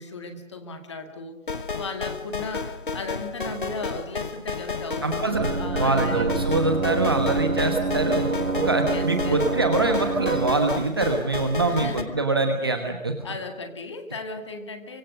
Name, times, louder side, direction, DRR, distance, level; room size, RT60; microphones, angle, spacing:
voice 1, 0.0-1.4 1.8-6.3 7.0-7.5 8.8-9.4 11.6-12.2 12.6-12.8 13.2-15.0, left 3 dB, 20° left, 5 dB, 2.1 m, -36 dB
sound 1, 1.5-12.0, left 4 dB, 40° left, 1.4 m, -32 dB
voice 2, 5.0-5.5 5.8-8.3 8.6-13.2, right 3 dB, 20° right, 4 dB, 1.2 m, -24 dB
sound 2, 5.3-10.6, right 4 dB, 80° right, 1.5 m, -27 dB
29.0 x 25.0 x 6.5 m, 0.88 s
figure-of-eight pair, 165°, 40 cm